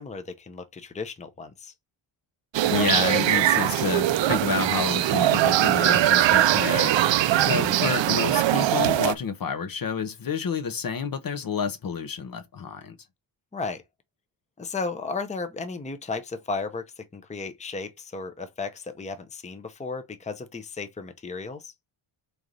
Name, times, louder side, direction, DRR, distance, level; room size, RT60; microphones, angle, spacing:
voice 1, 0.0-1.7 13.5-13.8 14.6-21.7, left 4 dB, 15° left, 0.8 m, -34 dB
sound 1, 2.5-9.1, right 13 dB, 65° right, 0.6 m, -21 dB
voice 2, 2.6-6.9 7.4-13.0, left 6 dB, 45° left, 0.9 m, -29 dB
4.6 x 3.9 x 5.2 m
wide cardioid pair, 145°, 49 cm